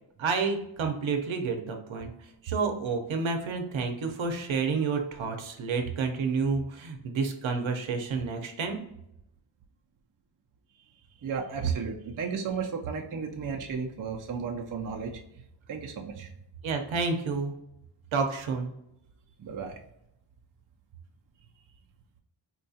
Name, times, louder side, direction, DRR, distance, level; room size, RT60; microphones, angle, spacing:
voice 1, 0.2-2.1 2.4-8.8 16.6-17.5 18.1-18.7, right 4 dB, 70° right, 4 dB, 0.8 m, -29 dB
voice 2, 11.2-15.2 15.7-16.3 19.4-19.8, right 5 dB, 45° right, 1 dB, 0.5 m, -34 dB
4.4 x 2.3 x 2.7 m, 0.79 s
wide cardioid pair, 120°, 48 cm